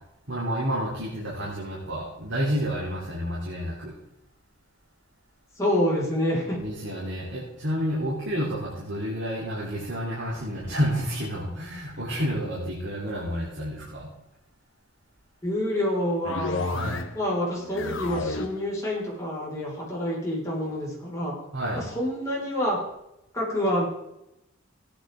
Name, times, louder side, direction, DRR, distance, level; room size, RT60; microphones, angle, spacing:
voice 1, 0.3-4.0 6.6-14.1 16.7-17.0 21.5-21.8, equal, 60° right, -5 dB, 3.9 m, -30 dB
voice 2, 5.6-6.6 15.4-16.8 17.1-21.3 21.7-22.8 23.3-23.8, left 1 dB, 15° left, -6 dB, 5.7 m, -27 dB
sound 1, 16.2-17.3 17.6-18.7, left 3 dB, 65° left, 0.9 m, -31 dB
17.0 x 10.0 x 3.9 m, 0.86 s
head